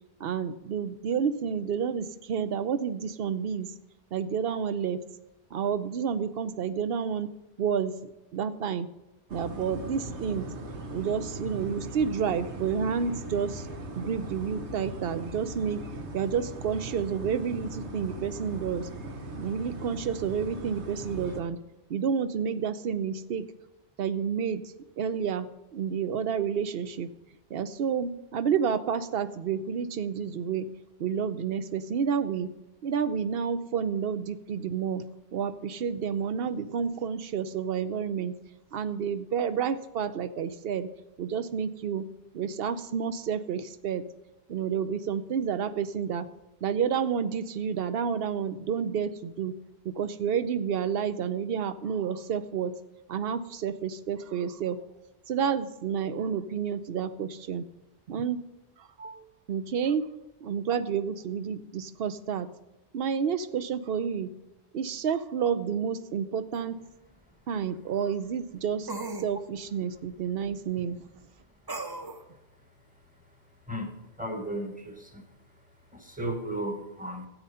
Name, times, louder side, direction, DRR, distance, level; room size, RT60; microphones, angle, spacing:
voice 1, 0.2-3.7 4.1-5.0 5.5-7.3 7.6-8.9 9.3-10.5 10.9-13.7 14.0-15.8 16.1-18.9 19.4-21.6 21.9-23.5 24.0-27.1 27.5-30.7 31.0-32.5 32.8-35.1 35.3-38.3 38.7-40.9 41.2-42.1 42.3-44.0 44.5-46.3 46.6-49.5 49.8-52.7 53.1-54.8 55.3-57.7 58.1-58.4 58.8-60.0 60.4-62.5 62.9-64.3 64.7-66.8 67.5-68.9 69.2-71.0, right 7 dB, 65° right, 13 dB, 0.8 m, -30 dB
sound 1, 9.3-21.4, right 1 dB, 85° right, 1.6 m, -39 dB
sound 2, 66.5-66.6 68.9-69.3 71.7-72.2, right 3 dB, 25° right, 0.7 m, -36 dB
voice 2, 73.7-75.2 75.9-77.3, right 1 dB, 5° right, 4 dB, 1.4 m, -35 dB
13.0 x 8.8 x 5.6 m, 0.97 s
omnidirectional pair, 1.1 m